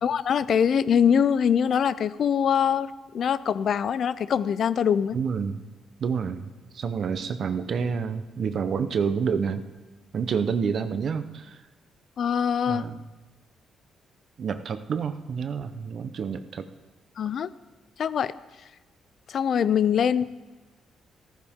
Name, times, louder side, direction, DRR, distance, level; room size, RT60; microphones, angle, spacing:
voice 1, 0.0-2.9 3.1-5.2 12.2-12.9 17.2-17.5 18.0-18.3 19.3-20.2, left 8 dB, 60° left, 16 dB, 0.4 m, -23 dB
voice 2, 5.1-5.6 6.0-6.5 6.7-9.6 10.1-11.6 12.7-13.0 14.4-16.7, right 6 dB, 55° right, 10 dB, 0.8 m, -28 dB
14.5 x 14.0 x 3.7 m, 1.2 s
cardioid pair, 90°, 0 cm